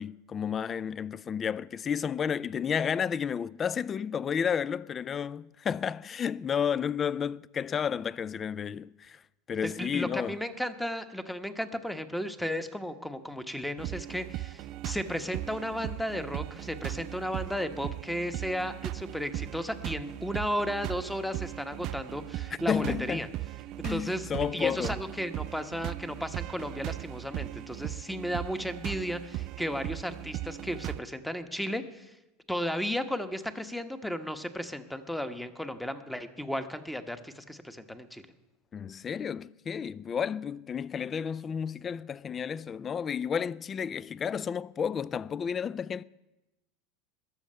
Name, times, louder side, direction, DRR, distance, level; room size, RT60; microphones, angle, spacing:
voice 1, 0.0-9.2 9.5-10.4 22.7-23.3 23.8-25.0 38.7-46.0, left 7 dB, 30° left, 0.3 m, -31 dB
voice 2, 9.6-23.3 23.9-32.1 32.5-38.2, equal, 5° left, 1.1 m, -34 dB
sound 1, 13.8-31.0, right 16 dB, 55° right, 0.4 m, -38 dB
20.5 x 7.2 x 5.5 m
hypercardioid pair, 85°, 0 cm